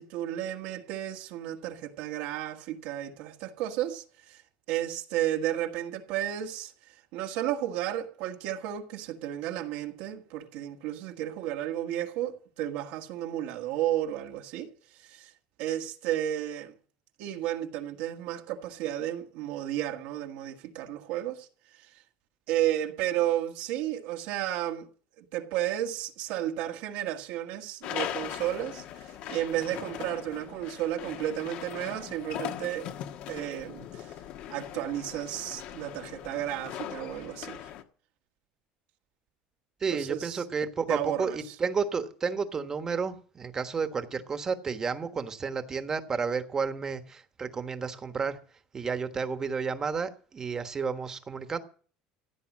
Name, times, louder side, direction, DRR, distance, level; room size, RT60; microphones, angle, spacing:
voice 1, 0.0-4.4 4.7-6.7 7.1-14.7 15.0-15.3 15.6-16.7 17.2-21.5 21.8-21.9 22.5-24.9 25.2-32.9 33.3-34.1 34.5-37.7 39.9-40.4 40.9-41.5, right 12 dB, 70° right, 1.7 m, -33 dB
sound 1, 27.8-37.8, left 11 dB, 60° left, 1.3 m, -40 dB
voice 2, 39.8-48.4 48.7-51.6, right 5 dB, 20° right, 1.4 m, -31 dB
15.5 x 8.6 x 7.3 m
cardioid pair, 150°, 3 cm